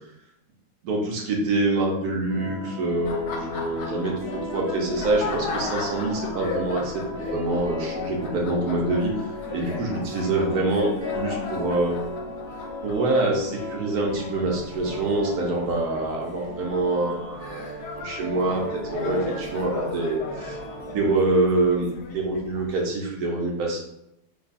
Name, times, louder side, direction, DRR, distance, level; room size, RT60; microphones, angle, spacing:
voice 1, 0.8-9.1 9.5-12.0 12.8-17.6 17.9-20.6 20.9-23.8, right 2 dB, 70° right, -1 dB, 1.2 m, -25 dB
sound 1, 2.3-21.2, equal, 45° right, 1.0 m, -37 dB
Laughter, 3.0-22.8, left 4 dB, 80° left, 1.1 m, -37 dB
3.1 x 2.3 x 4.1 m, 0.82 s
omnidirectional pair, 1.7 m